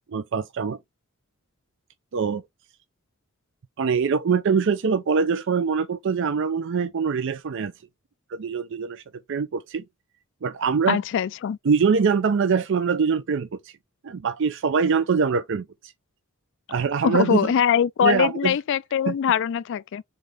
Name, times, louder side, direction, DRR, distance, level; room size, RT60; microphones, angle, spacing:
voice 1, 0.1-0.8 2.1-2.4 3.8-7.7 8.3-9.0 9.3-9.8 10.4-11.0 11.6-13.5 14.0-15.7 16.7-17.5 18.0-18.5 19.1-19.2, right 5 dB, 60° right, 0.4 m, -23 dB
voice 2, 10.9-11.6 17.0-20.0, left 8 dB, 60° left, 0.3 m, -22 dB
3.9 x 3.5 x 3.2 m
head